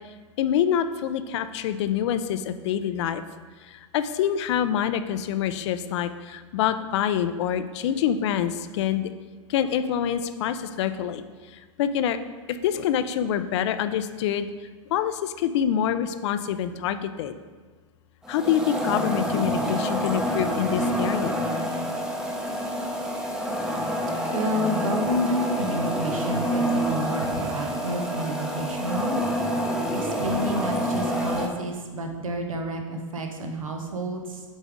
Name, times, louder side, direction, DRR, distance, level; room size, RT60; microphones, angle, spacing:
voice 1, 0.4-3.2 3.6-9.1 9.5-11.2 11.5-12.2 12.6-14.5 14.9-17.3 18.3-21.3, left 9 dB, 60° left, 11 dB, 0.4 m, -26 dB
sound 1, 18.2-31.5, equal, 5° right, 0.7 m, -27 dB
voice 2, 24.3-29.2 29.9-34.4, equal, 85° right, 4 dB, 0.9 m, -30 dB
8.1 x 3.6 x 3.6 m, 1.4 s
hypercardioid pair, 105°, 17 cm